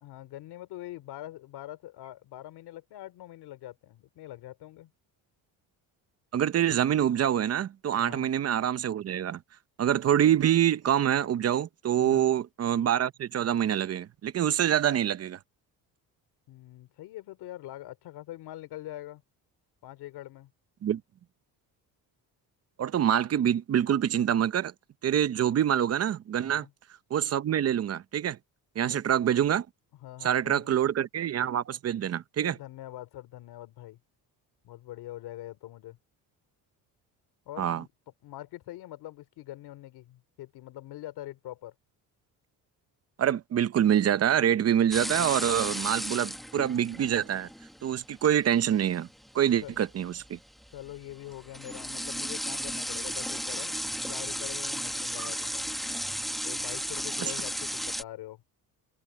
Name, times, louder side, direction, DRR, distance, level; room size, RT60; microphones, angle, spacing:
voice 1, 0.0-4.9 7.9-8.3 12.0-12.3 16.5-19.2 19.8-20.5 26.4-26.7 28.8-29.0 30.0-30.7 32.4-34.0 34.6-36.0 37.5-37.9 38.2-41.7 49.6-49.8 50.7-53.7 54.1-55.7 56.4-58.4, left 14 dB, 90° left, 2.9 m, -44 dB
voice 2, 6.3-9.4 9.8-15.4 20.8-21.0 22.8-24.7 25.0-26.7 27.1-28.4 28.8-29.7 30.2-32.6 37.6-37.8 43.2-47.5 47.8-49.1 49.3-50.4 55.2-55.3 57.2-57.3, right 10 dB, 40° right, 0.7 m, -26 dB
sound 1, 44.9-58.0, equal, ahead, 1.2 m, -35 dB
cardioid pair, 135°, 38 cm